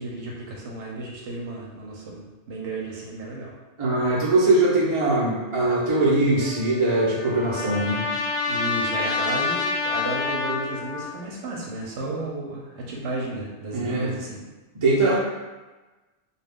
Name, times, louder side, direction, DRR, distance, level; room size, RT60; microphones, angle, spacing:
voice 1, 0.0-3.5 8.5-14.4, right 2 dB, 80° right, -2 dB, 0.9 m, -33 dB
voice 2, 3.8-8.0 13.7-14.1 14.8-15.2, right 2 dB, 30° right, -7 dB, 0.7 m, -21 dB
Trumpet, 6.4-11.2, left 4 dB, 50° left, 0.5 m, -28 dB
2.3 x 2.3 x 3.4 m, 1.2 s
omnidirectional pair, 1.2 m